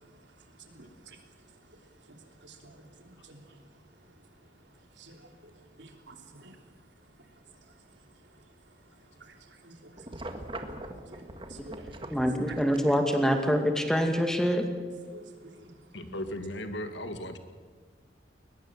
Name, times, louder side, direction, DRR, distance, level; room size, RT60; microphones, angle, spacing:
voice 1, 0.0-12.6 15.1-16.0, right 2 dB, 85° right, 3.4 m, -53 dB
sound 1, 10.0-12.8, right 1 dB, 30° right, 1.7 m, -41 dB
voice 2, 12.1-14.7, equal, 5° left, 2.3 m, -25 dB
voice 3, 15.9-17.4, left 1 dB, 90° left, 2.2 m, -36 dB
22.0 x 20.5 x 7.6 m
head